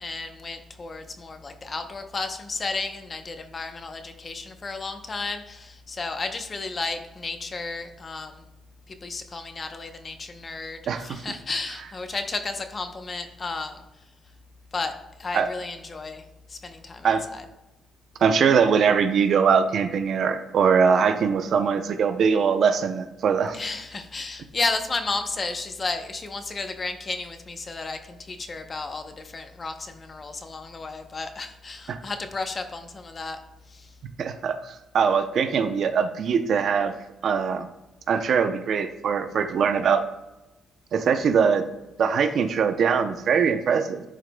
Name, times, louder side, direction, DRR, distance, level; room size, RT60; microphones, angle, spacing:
voice 1, 0.0-8.4 8.9-13.8 14.7-16.2 16.5-17.4 23.5-33.4 33.7-33.9, left 3 dB, 35° left, 7 dB, 0.8 m, -33 dB
voice 2, 10.9-11.2 15.3-15.5 17.0-17.2 18.2-23.6 31.9-32.0 34.2-36.9 37.2-37.7 38.1-40.0 40.9-41.6 42.0-44.0, right 6 dB, 60° right, 8 dB, 0.6 m, -22 dB
11.0 x 4.9 x 2.3 m, 0.99 s
cardioid pair, 90°, 0 cm